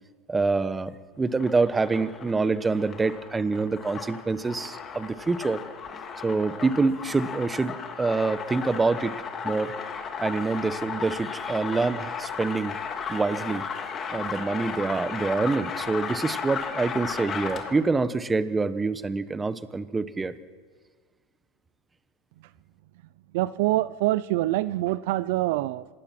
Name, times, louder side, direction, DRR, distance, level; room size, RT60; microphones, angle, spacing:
voice 1, 0.3-0.9 1.2-5.6 6.2-9.1 9.4-9.7 10.2-12.8 13.0-13.7 14.1-20.3, right 3 dB, 15° right, 14 dB, 1.1 m, -26 dB
sound 1, 1.2-17.9, left 6 dB, 30° left, 3.0 m, -35 dB
voice 2, 23.3-25.9, right 16 dB, 65° right, 17 dB, 0.6 m, -25 dB
26.0 x 19.5 x 6.0 m, 1.5 s
hypercardioid pair, 110°, 0 cm